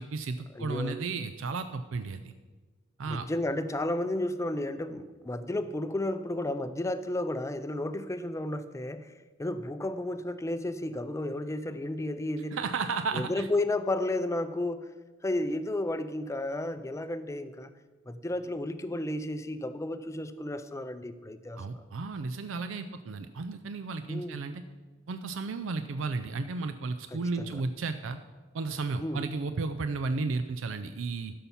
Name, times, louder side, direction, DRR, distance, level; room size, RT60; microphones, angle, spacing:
voice 1, 0.0-2.3 3.0-3.3 12.5-13.5 21.6-24.6 25.1-28.2 28.5-31.3, right 4 dB, 80° right, 9 dB, 0.5 m, -33 dB
voice 2, 0.5-1.0 3.1-9.1 9.4-12.6 13.1-14.9 15.2-17.7 18.1-21.8 24.1-24.4 27.1-27.6 29.0-29.3, left 1 dB, 15° left, 11 dB, 0.4 m, -32 dB
12.5 x 5.6 x 5.5 m, 1.3 s
head